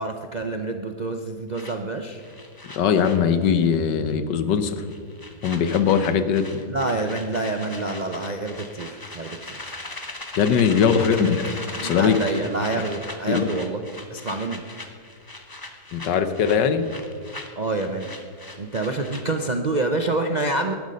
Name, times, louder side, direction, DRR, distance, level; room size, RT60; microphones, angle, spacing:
voice 1, 0.0-2.2 6.7-9.4 11.2-11.3 11.8-13.8 14.1-14.6 17.6-18.1 18.6-20.7, right 2 dB, 50° right, 5 dB, 0.5 m, -27 dB
sound 1, 1.5-3.8 4.1-4.3 4.6-19.5, left 2 dB, 15° left, 0.9 m, -39 dB
voice 2, 2.8-4.8 5.4-6.6 10.4-11.4 11.8-12.2 13.3-13.5 15.9-16.8, left 7 dB, 85° left, 10 dB, 1.6 m, -20 dB
18.0 x 11.5 x 5.3 m, 2.1 s
omnidirectional pair, 1.8 m